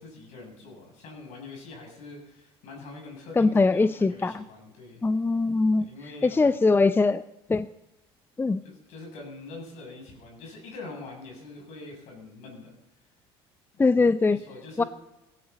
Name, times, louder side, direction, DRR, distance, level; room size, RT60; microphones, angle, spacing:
voice 1, 0.0-5.1 5.8-6.6 8.6-12.7 14.3-14.9, left 3 dB, 65° left, 1 dB, 7.7 m, -44 dB
voice 2, 3.4-4.4 5.0-5.9 6.2-7.2 7.5-7.7 8.4-8.6 13.8-14.4 14.8-14.9, left 3 dB, 15° left, 14 dB, 0.6 m, -22 dB
17.5 x 16.0 x 4.1 m, 0.91 s
hypercardioid pair, 70°, 13 cm